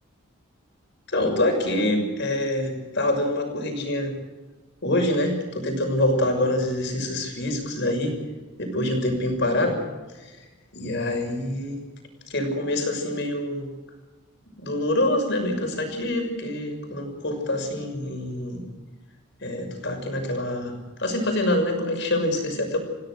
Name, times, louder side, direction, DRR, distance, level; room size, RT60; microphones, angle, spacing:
voice 1, 1.1-4.2 4.8-8.2 8.6-9.8 10.2-10.3 10.7-11.8 12.3-13.7 14.6-18.6 19.4-20.7 21.0-22.8, left 1 dB, 60° left, 4 dB, 6.4 m, -25 dB
29.0 x 16.5 x 6.5 m, 1.2 s
head